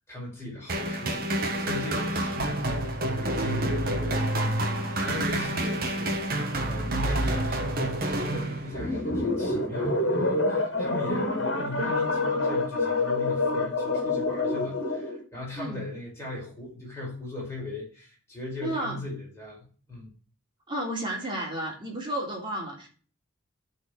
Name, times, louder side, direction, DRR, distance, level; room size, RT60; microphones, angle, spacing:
voice 1, 0.1-2.7 3.1-20.1, left 1 dB, 10° left, -5 dB, 5.0 m, -39 dB
sound 1, 0.7-9.0, right 1 dB, 45° right, 1.4 m, -28 dB
sound 2, 8.7-15.2, left 2 dB, 60° left, 2.1 m, -27 dB
voice 2, 18.6-19.0 20.7-22.9, right 1 dB, 25° right, -2 dB, 3.0 m, -32 dB
13.0 x 4.5 x 4.6 m, 0.41 s
head